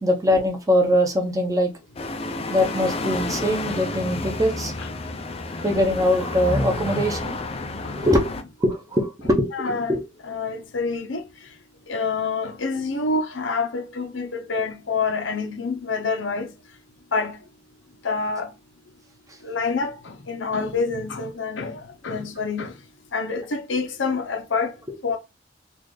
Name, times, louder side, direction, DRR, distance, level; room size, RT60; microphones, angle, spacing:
voice 1, 0.0-1.7 2.5-4.7 5.6-7.4 7.9-8.3 8.6-10.0, left 1 dB, 20° right, 0.8 m, -22 dB
sound 1, 2.0-8.4, left 2 dB, 30° left, 0.5 m, -30 dB
voice 2, 9.5-10.0 10.3-11.2 11.9-16.5 17.1-17.4 18.0-18.5 19.4-22.7 23.1-24.7 25.0-25.2, left 4 dB, 70° left, 0.7 m, -27 dB
4.1 x 2.5 x 3.2 m
head